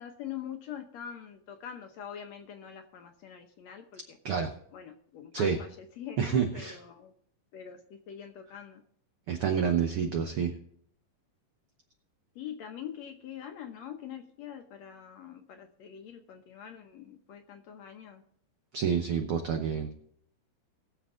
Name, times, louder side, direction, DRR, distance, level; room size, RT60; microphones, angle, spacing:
voice 1, 0.0-4.2 4.7-7.1 7.5-8.8 12.4-18.2, left 9 dB, 65° left, 5 dB, 1.9 m, -44 dB
voice 2, 6.2-6.7 9.3-10.5 18.7-19.9, right 7 dB, 85° right, 5 dB, 1.2 m, -28 dB
20.5 x 7.1 x 3.7 m, 0.66 s
omnidirectional pair, 3.9 m